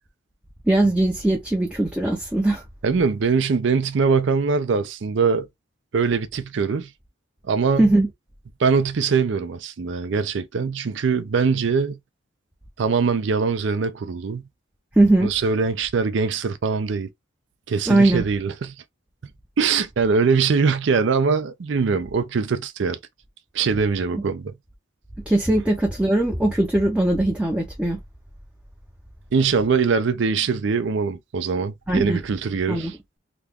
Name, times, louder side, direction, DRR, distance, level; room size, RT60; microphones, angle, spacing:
voice 1, 0.7-2.6 7.8-8.1 15.0-15.3 17.9-18.2 24.1-24.2 25.3-28.0 31.9-32.2 32.7-32.9, right 1 dB, 5° right, 0.5 m, -20 dB
voice 2, 2.8-5.5 5.9-6.9 7.5-7.9 8.6-12.0 12.8-14.5 15.2-17.1 17.7-18.7 19.6-23.0 23.5-24.5 29.3-33.0, right 5 dB, 70° right, 0.4 m, -22 dB
3.0 x 2.3 x 3.5 m
head